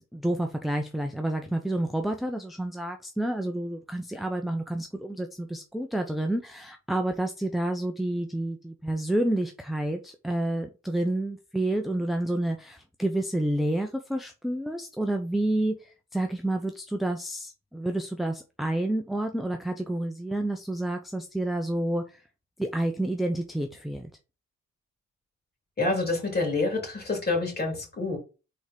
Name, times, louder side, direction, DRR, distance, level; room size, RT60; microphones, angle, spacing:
voice 1, 0.1-22.2 22.6-24.1, right 1 dB, ahead, 0.7 m, -29 dB
voice 2, 25.8-28.2, left 3 dB, 30° left, 3.2 m, -27 dB
4.8 x 4.2 x 5.1 m
cardioid pair, 90°, 30 cm